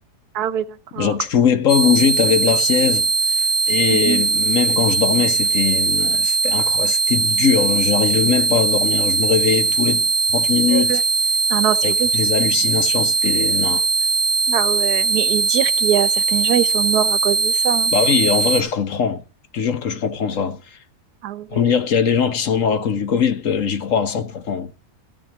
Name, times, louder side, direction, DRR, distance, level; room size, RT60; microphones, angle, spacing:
voice 1, 0.3-1.2 3.9-4.2 10.7-11.0 11.5-12.1 14.5-17.9 21.2-21.5, right 11 dB, 90° right, 1.4 m, -23 dB
voice 2, 1.0-3.3 3.7-11.0 11.8-13.8 17.9-19.2 19.5-20.6 21.5-24.7, left 7 dB, 60° left, 1.3 m, -21 dB
sound 1, 1.7-18.6, right 4 dB, 30° right, 1.5 m, -20 dB
14.5 x 6.3 x 8.5 m
omnidirectional pair, 1.6 m